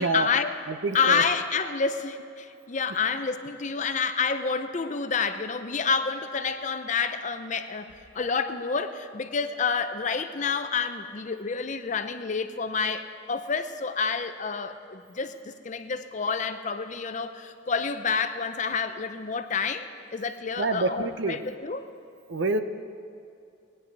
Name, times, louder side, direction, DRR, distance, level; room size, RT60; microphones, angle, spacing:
voice 1, 0.0-0.5 0.9-21.9, left 5 dB, 40° left, 9 dB, 0.6 m, -29 dB
voice 2, 0.7-1.2 2.9-3.0 20.6-21.4 22.3-22.6, right 3 dB, 70° right, 9 dB, 0.7 m, -27 dB
20.0 x 10.0 x 4.7 m, 2.5 s
head